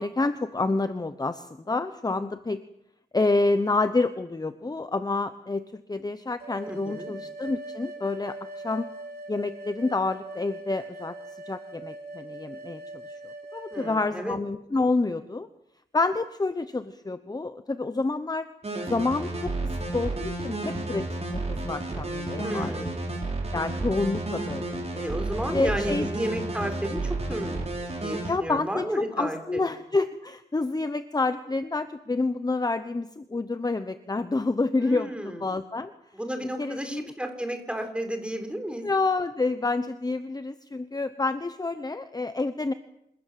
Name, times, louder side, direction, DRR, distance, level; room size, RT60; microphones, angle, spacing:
voice 1, 0.0-2.6 3.1-8.4 8.6-8.9 9.3-11.2 11.5-12.8 13.1-13.2 13.5-15.5 15.9-18.5 18.8-19.5 19.9-22.9 23.5-25.0 25.5-26.1 28.3-35.9 36.6-37.0 38.8-42.7, left 3 dB, 20° left, 11 dB, 1.0 m, -28 dB
sound 1, 6.4-14.0, right 2 dB, 60° right, 4.5 m, -41 dB
voice 2, 6.6-7.1 13.7-14.4 22.4-23.1 25.0-29.6 34.8-35.4 36.1-38.8, right 1 dB, 5° right, 6 dB, 4.3 m, -33 dB
sound 2, 18.6-28.3, right 2 dB, 35° right, 6.3 m, -31 dB
27.5 x 19.5 x 7.6 m, 0.80 s
wide cardioid pair, 135°, 18 cm